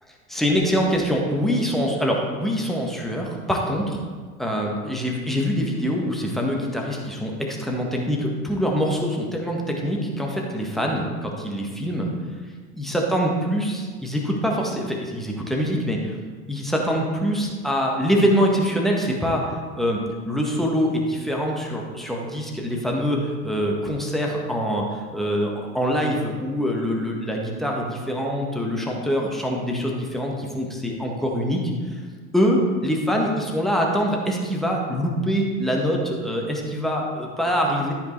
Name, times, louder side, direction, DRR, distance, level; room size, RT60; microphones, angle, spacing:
voice 1, 0.3-4.0 4.4-12.1 12.8-16.2 16.5-20.0 20.3-32.0 32.3-37.9, equal, ahead, -1 dB, 1.4 m, -24 dB
12.5 x 5.5 x 3.3 m, 1.5 s
figure-of-eight pair, 75°, 44 cm